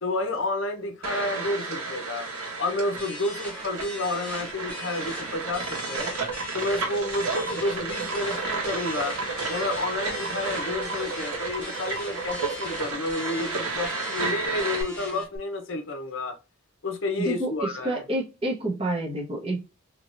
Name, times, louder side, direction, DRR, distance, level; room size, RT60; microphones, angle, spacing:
voice 1, 0.0-2.3 2.6-6.2 6.5-9.2 9.5-16.4 16.8-18.0, left 2 dB, 60° left, 0.7 m, -30 dB
sound 1, 1.0-14.8, right 3 dB, 85° right, 1.4 m, -32 dB
sound 2, 3.0-15.4, left 2 dB, 10° left, 1.1 m, -41 dB
sound 3, 6.0-12.8, right 3 dB, 55° right, 0.6 m, -36 dB
voice 2, 17.2-19.6, right 1 dB, 25° right, 0.9 m, -29 dB
3.4 x 2.9 x 2.5 m
head